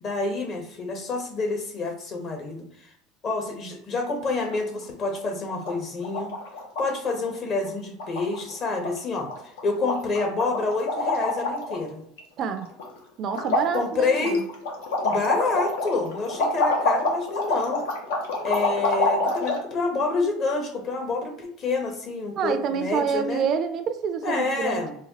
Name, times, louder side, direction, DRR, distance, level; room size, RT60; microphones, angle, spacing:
voice 1, 0.0-2.9 3.2-6.3 6.8-12.0 13.7-14.4 15.0-17.8 18.4-23.4 24.2-24.9, left 3 dB, 45° left, 4 dB, 0.9 m, -28 dB
sound 1, 4.4-4.8 5.1-5.2 5.5-5.8 6.0-6.8 7.1-7.3 7.6-7.7 8.0-8.5 8.8-9.0 9.3-9.6 9.9-11.8 12.2-13.0 13.3-19.6, left 2 dB, 85° left, 0.8 m, -26 dB
voice 2, 12.4-12.7 13.2-14.4 22.4-24.8, right 6 dB, 45° right, 9 dB, 0.4 m, -27 dB
4.0 x 2.3 x 2.8 m, 0.69 s
supercardioid pair, 105°, 0 cm